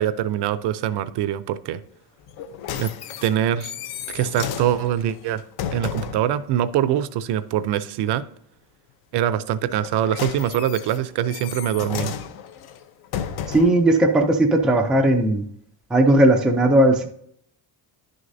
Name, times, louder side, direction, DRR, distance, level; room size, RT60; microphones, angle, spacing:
voice 1, 0.0-1.8 2.8-2.9 3.2-3.7 4.1-5.4 5.7-8.2 9.1-12.1, right 11 dB, 65° right, 15 dB, 0.6 m, -23 dB
sound 1, 2.3-6.3 9.7-13.9 14.6-14.7, left 8 dB, 60° left, 0.7 m, -33 dB
voice 2, 13.5-15.4 15.9-17.1, right 1 dB, ahead, 3 dB, 0.3 m, -17 dB
11.0 x 6.4 x 2.6 m, 0.68 s
cardioid pair, 175°, 43 cm